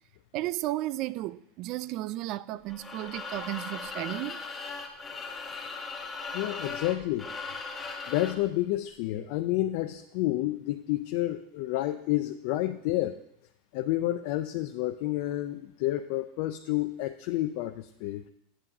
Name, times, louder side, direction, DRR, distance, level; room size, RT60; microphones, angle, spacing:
voice 1, 0.3-4.4, right 16 dB, 50° right, 0.3 m, -34 dB
sound 1, 2.7-8.5, left 4 dB, 15° left, 1.6 m, -38 dB
voice 2, 6.3-7.3 8.1-13.2 13.7-18.2, left 15 dB, 60° left, 0.4 m, -30 dB
11.0 x 8.7 x 2.7 m
hypercardioid pair, 110°, 0 cm